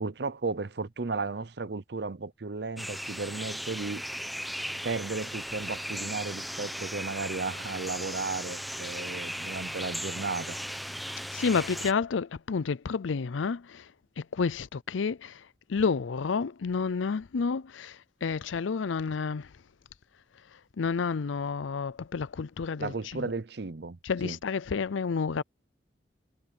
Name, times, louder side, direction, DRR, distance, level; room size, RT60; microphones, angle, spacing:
voice 1, 0.0-4.0 4.8-10.6 22.8-24.4, right 3 dB, 60° right, 0.7 m, -34 dB
sound 1, 2.8-11.9, equal, ahead, 0.9 m, -37 dB
voice 2, 11.3-19.5 20.8-23.3 24.0-25.4, left 5 dB, 90° left, 0.5 m, -30 dB
head